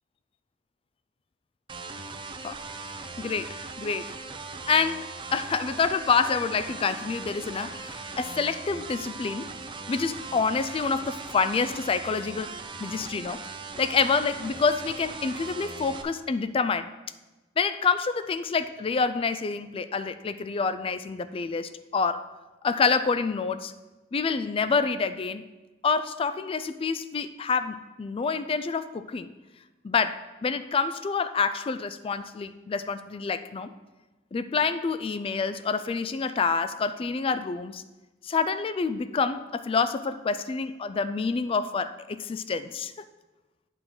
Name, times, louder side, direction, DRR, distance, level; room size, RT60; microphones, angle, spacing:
sound 1, 1.7-16.0, right 4 dB, 25° right, 0.5 m, -39 dB
voice 1, 3.2-4.1 4.7-9.5 9.9-12.5 12.8-13.4 13.8-16.9 17.6-22.3 22.6-23.7 24.1-25.5 25.8-29.3 29.8-33.7 34.3-37.8 38.2-43.1, left 5 dB, 30° left, 12 dB, 0.3 m, -27 dB
9.0 x 3.8 x 6.1 m, 1.1 s
head